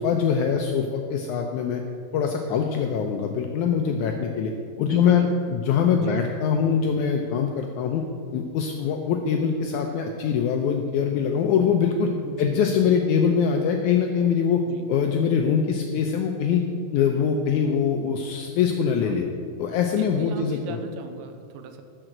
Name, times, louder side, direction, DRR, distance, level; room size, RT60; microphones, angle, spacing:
voice 1, 0.0-1.8 2.1-4.5 4.8-5.3 5.5-8.0 8.3-12.1 12.4-14.6 14.9-16.6 16.9-19.2 19.6-20.8, left 7 dB, 80° left, 3 dB, 1.9 m, -23 dB
voice 2, 4.8-5.4 6.0-6.2 12.2-12.7 14.7-14.8 18.8-19.3 20.0-21.8, right 6 dB, 80° right, 7 dB, 2.2 m, -39 dB
13.5 x 5.0 x 7.7 m, 2.4 s
omnidirectional pair, 3.8 m